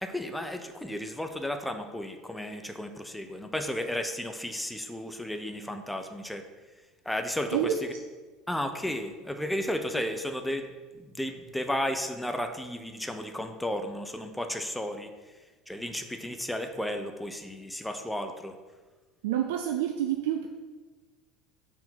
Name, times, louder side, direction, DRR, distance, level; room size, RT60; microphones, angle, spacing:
voice 1, 0.0-6.5 7.0-7.7 8.5-15.1 15.7-18.6, left 1 dB, 5° left, 6 dB, 0.7 m, -33 dB
voice 2, 19.2-20.5, right 10 dB, 80° right, 4 dB, 0.4 m, -28 dB
6.0 x 4.3 x 5.8 m, 1.3 s
hypercardioid pair, 80°, 0 cm